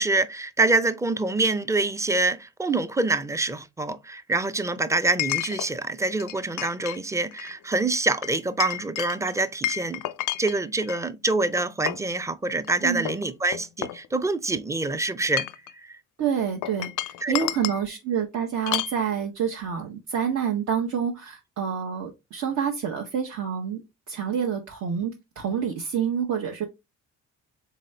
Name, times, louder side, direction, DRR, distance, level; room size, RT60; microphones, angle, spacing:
voice 1, 0.0-10.0 10.4-15.5 15.7-16.0 17.2-17.4, right 2 dB, 10° right, 0.4 m, -26 dB
Chink clink, 1.7-1.8 5.2-5.7 6.2-7.0 7.3-7.5 8.2-11.0 11.6-12.1 12.6-12.7 13.1-14.5 15.2-15.7 16.6-17.8 18.7-19.0, left 14 dB, 85° left, 0.5 m, -31 dB
voice 2, 16.2-23.8 24.1-25.1 25.4-26.7, right 7 dB, 65° right, 1.0 m, -27 dB
4.1 x 3.8 x 3.2 m
cardioid pair, 90°, 30 cm